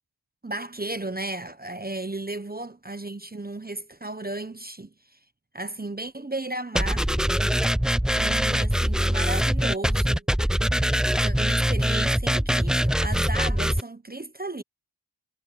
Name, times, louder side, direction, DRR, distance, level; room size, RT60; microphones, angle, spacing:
voice 1, 0.4-5.2 5.5-7.1 8.2-10.3 10.5-10.8 11.2-14.6, right 2 dB, 20° right, 1.1 m, -34 dB
sound 1, 6.7-13.8, equal, ahead, 0.6 m, -23 dB
wide cardioid pair, 60°, 44 cm